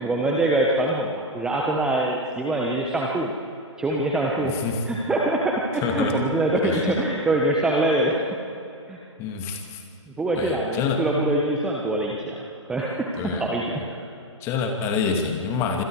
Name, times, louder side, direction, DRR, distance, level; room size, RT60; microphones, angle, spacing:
voice 1, 0.0-3.3 3.8-4.6 4.9-8.2 8.9-9.0 10.2-12.4 12.7-13.8, right 2 dB, 5° right, -2 dB, 1.3 m, -24 dB
voice 2, 4.4-4.8 5.7-6.2 6.6-7.0 9.2-9.8 10.4-11.0 13.2-13.5 14.4-15.8, left 6 dB, 15° left, 4 dB, 2.4 m, -27 dB
27.5 x 26.0 x 4.9 m, 2.6 s
figure-of-eight pair, 145°, 16 cm